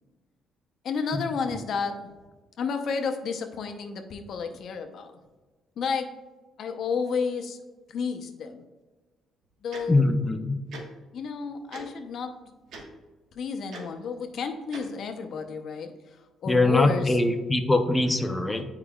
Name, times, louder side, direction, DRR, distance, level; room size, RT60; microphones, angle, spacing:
voice 1, 0.8-2.1 2.6-5.1 5.8-6.2 6.6-7.6 7.9-8.6 9.6-10.0 11.1-12.4 13.3-17.1, left 5 dB, 50° left, 6 dB, 0.7 m, -31 dB
Tick-tock, 9.7-9.8 10.7-10.8 11.7-11.8 12.7-12.8 13.7-13.8 14.7-14.8, right 3 dB, 70° right, 1.2 m, -40 dB
voice 2, 9.9-10.6 16.5-18.6, left 2 dB, 10° left, 6 dB, 0.5 m, -23 dB
9.0 x 4.8 x 2.3 m, 1.2 s
cardioid pair, 155°, 0 cm